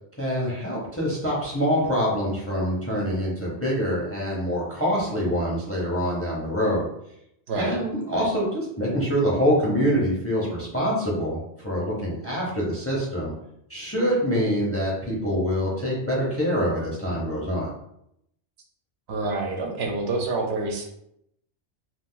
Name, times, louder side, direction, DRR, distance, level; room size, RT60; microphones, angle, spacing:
voice 1, 0.2-6.9 7.6-13.3 13.7-17.7, equal, 15° left, -5 dB, 0.6 m, -25 dB
voice 2, 7.5-7.8 19.1-20.8, right 3 dB, 75° right, 1 dB, 0.8 m, -27 dB
2.4 x 2.3 x 3.7 m, 0.77 s
omnidirectional pair, 1.1 m